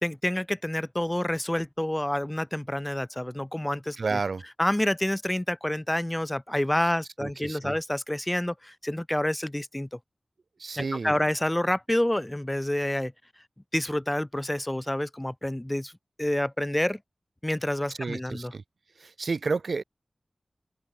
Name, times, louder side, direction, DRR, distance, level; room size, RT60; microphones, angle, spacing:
voice 1, 0.0-4.2 4.6-10.0 10.8-13.1 13.7-15.9 16.2-17.0 17.4-18.5, left 1 dB, 15° left, 1.6 m, -28 dB
voice 2, 4.0-4.4 7.2-7.8 10.6-11.2 18.0-18.6 19.0-19.8, right 4 dB, 85° right, 1.9 m, -31 dB
open air
cardioid pair, 45°, 0 cm